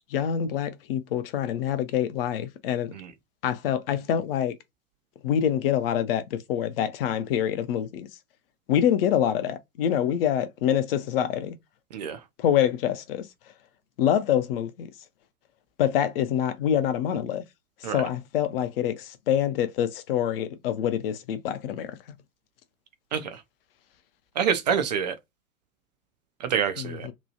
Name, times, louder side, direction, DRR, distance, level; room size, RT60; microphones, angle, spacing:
voice 1, 0.1-2.9 3.4-4.5 5.2-8.1 8.7-11.6 12.4-13.3 14.0-14.9 15.8-17.4 17.8-22.0 26.8-27.1, left 10 dB, 40° left, 0.6 m, -26 dB
voice 2, 24.4-25.1 26.4-27.1, right 7 dB, 30° right, 0.4 m, -26 dB
2.9 x 2.3 x 2.6 m
figure-of-eight pair, 95°, 43 cm